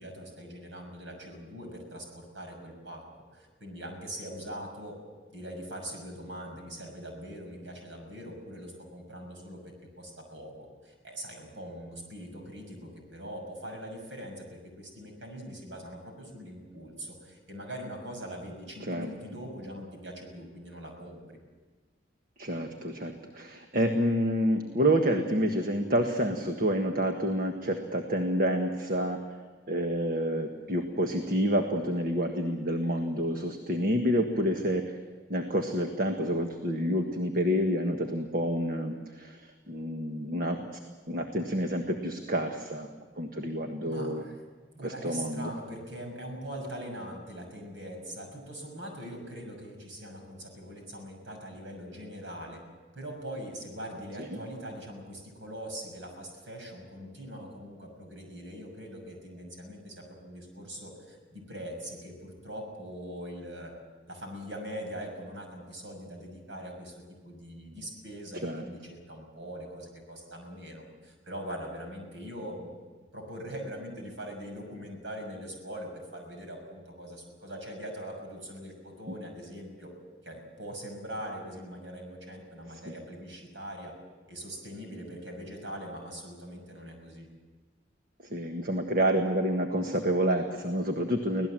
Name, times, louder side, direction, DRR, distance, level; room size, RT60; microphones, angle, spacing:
voice 1, 0.0-3.0 3.3-5.0 5.3-21.4 34.3-34.7 43.8-44.4 44.7-52.6 52.9-63.7 64.1-66.9 67.2-72.7 73.1-79.9 80.2-83.9 84.3-87.3, equal, 90° right, 3 dB, 6.4 m, -42 dB
voice 2, 22.4-29.2 29.7-34.9 35.3-39.3 39.7-40.7 41.1-42.9 43.2-44.2 44.8-45.5 54.2-54.3 68.4-68.6 88.3-91.5, equal, 50° right, 4 dB, 1.5 m, -28 dB
25.0 x 17.5 x 7.6 m, 1.3 s
head